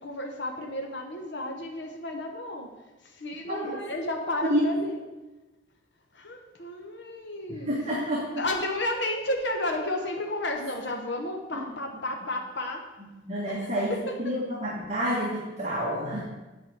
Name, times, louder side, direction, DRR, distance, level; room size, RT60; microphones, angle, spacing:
voice 1, 0.0-2.7 3.0-5.0 6.1-7.8 8.4-12.8 13.4-14.0, left 1 dB, 60° left, 2 dB, 1.0 m, -32 dB
voice 2, 3.5-3.8 4.5-4.6 7.5-8.4 11.6-11.7 13.2-13.9 14.2-16.2, equal, 35° right, -5 dB, 1.7 m, -29 dB
9.1 x 5.0 x 7.8 m, 1.1 s
head